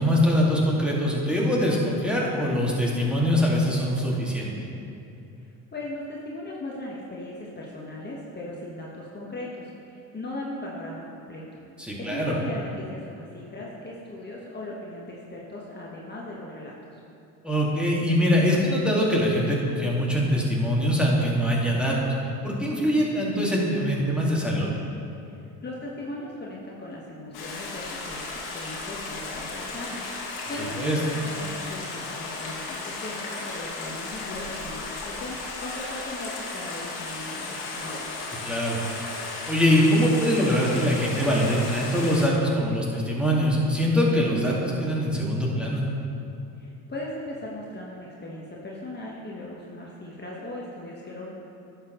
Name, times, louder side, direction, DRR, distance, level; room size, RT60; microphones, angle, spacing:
voice 1, 0.0-4.5 11.8-12.4 17.4-22.1 22.4-24.7 30.8-31.0 38.5-38.8 39.5-45.8, equal, 5° right, -4 dB, 2.0 m, -23 dB
voice 2, 5.4-11.4 12.0-17.0 25.3-28.2 28.5-38.1 46.5-51.3, left 1 dB, 25° left, -4 dB, 1.4 m, -38 dB
Stream, 27.3-42.3, left 3 dB, 70° left, 1.7 m, -35 dB
11.0 x 6.8 x 3.1 m, 2.7 s
hypercardioid pair, 65°, 39 cm